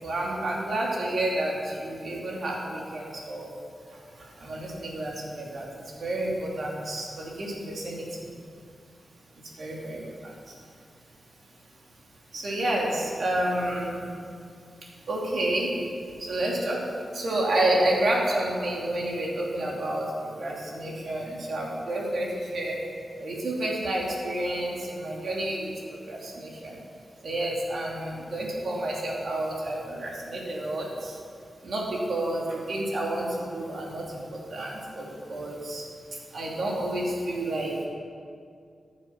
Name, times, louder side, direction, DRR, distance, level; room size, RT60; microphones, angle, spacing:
voice 1, 0.0-3.5 4.4-5.6 6.0-8.0 9.6-10.3 12.3-14.0 15.1-15.7 16.2-16.8 17.1-22.8 23.2-25.7 26.1-26.8 27.2-31.1 31.6-34.2 34.5-35.8 36.3-37.9, right 1 dB, 60° right, -3 dB, 3.0 m, -29 dB
14.5 x 7.9 x 6.0 m, 2.3 s
wide cardioid pair, 105°, 0 cm